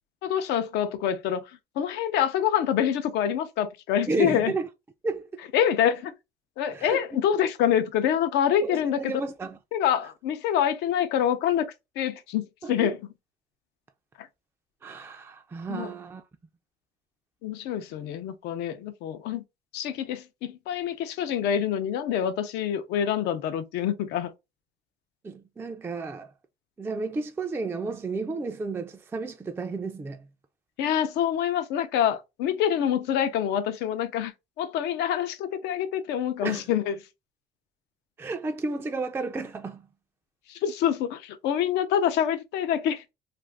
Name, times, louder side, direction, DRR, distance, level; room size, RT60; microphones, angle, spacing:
voice 1, 0.2-1.4 1.8-4.5 5.5-6.1 6.6-9.1 9.7-11.7 12.0-13.0 15.7-15.9 17.4-19.4 19.7-24.3 30.8-34.3 34.6-36.9 40.5-43.0, left 9 dB, 85° left, 0.5 m, -26 dB
voice 2, 4.1-4.7 5.0-5.4 6.7-7.3 8.6-9.6 12.6-12.9 14.8-16.2 25.2-26.3 26.8-30.3 36.4-36.7 38.2-39.9, right 3 dB, 15° right, 0.3 m, -32 dB
2.5 x 2.4 x 3.2 m
cardioid pair, 110°, 17 cm